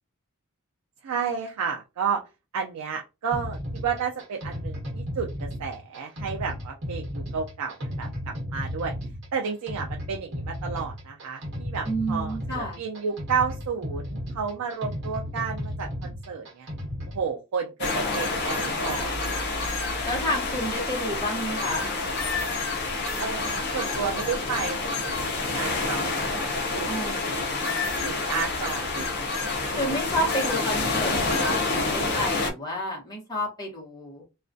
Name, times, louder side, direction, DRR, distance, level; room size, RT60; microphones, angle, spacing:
voice 1, 1.0-2.2 2.5-8.9 9.3-16.7 17.1-19.6 19.8-20.2 23.2-27.2 28.0-29.5, right 6 dB, 85° right, 2 dB, 0.4 m, -32 dB
sound 1, 3.3-17.2, equal, 55° right, 1.1 m, -34 dB
voice 2, 11.9-12.8 20.0-21.9 26.9-27.8 29.8-34.2, equal, 15° left, -2 dB, 0.8 m, -30 dB
sound 2, 17.8-32.5, left 3 dB, 50° left, 0.5 m, -28 dB
2.3 x 2.1 x 2.5 m, 0.27 s
head